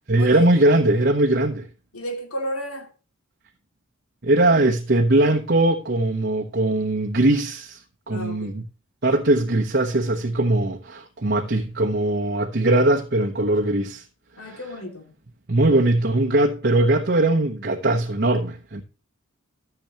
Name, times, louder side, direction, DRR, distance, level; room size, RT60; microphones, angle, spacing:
voice 1, 0.1-1.7 4.2-7.8 8.1-8.6 9.0-14.0 14.4-14.6 15.5-18.8, right 2 dB, 50° right, 1.1 m, -20 dB
voice 2, 1.9-2.9 8.1-8.6 14.4-15.1, equal, 90° left, 2.6 m, -32 dB
14.0 x 7.1 x 3.0 m
head